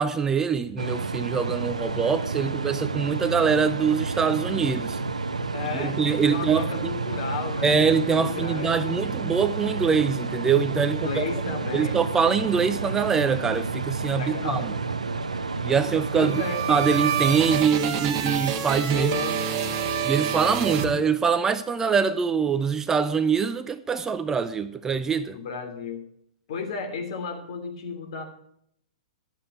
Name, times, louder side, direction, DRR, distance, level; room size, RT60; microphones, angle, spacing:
voice 1, 0.0-5.0 5.7-6.6 7.6-11.2 11.7-14.6 15.6-16.4 16.7-19.1 20.0-25.4, right 6 dB, 15° right, 0.5 m, -24 dB
sound 1, 0.8-17.6, right 3 dB, 85° right, 0.8 m, -30 dB
voice 2, 2.0-2.6 5.5-6.0 6.3-8.8 10.9-12.0 12.4-12.7 14.2-14.7 16.1-16.6 18.9-19.4 25.3-26.0 26.5-28.2, left 4 dB, 55° left, 2.8 m, -34 dB
sound 2, 15.9-21.5, right 7 dB, 40° right, 1.4 m, -28 dB
11.5 x 7.4 x 5.8 m
figure-of-eight pair, 115°, 4 cm